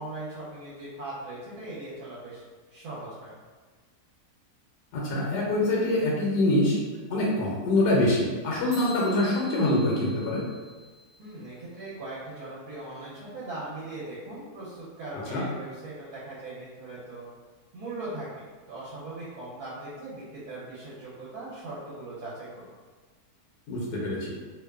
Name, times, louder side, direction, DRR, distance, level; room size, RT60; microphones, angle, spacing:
voice 1, 0.0-2.4 2.7-3.3 11.2-17.3 17.7-22.6, right 2 dB, 70° right, -8 dB, 1.1 m, -39 dB
voice 2, 4.9-6.8 7.1-10.4 15.3-15.4 23.7-24.3, left 1 dB, 80° left, -4 dB, 1.1 m, -25 dB
sound 1, 8.7-11.3, left 1 dB, 50° right, 0.8 m, -45 dB
2.9 x 2.1 x 2.3 m, 1.4 s
omnidirectional pair, 1.8 m